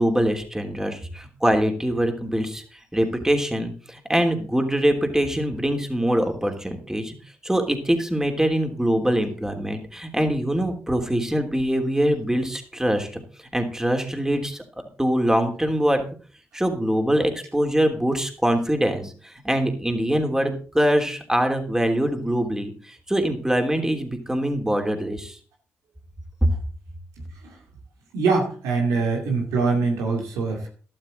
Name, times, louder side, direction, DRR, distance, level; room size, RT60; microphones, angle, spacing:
voice 1, 0.0-7.1 7.4-13.2 13.5-14.6 15.0-16.0 16.5-25.4 26.4-26.5, equal, 10° right, 4 dB, 3.1 m, -23 dB
voice 2, 28.1-30.7, right 4 dB, 90° right, 1 dB, 2.6 m, -23 dB
13.0 x 12.0 x 3.9 m, 0.40 s
supercardioid pair, 45°, 5 cm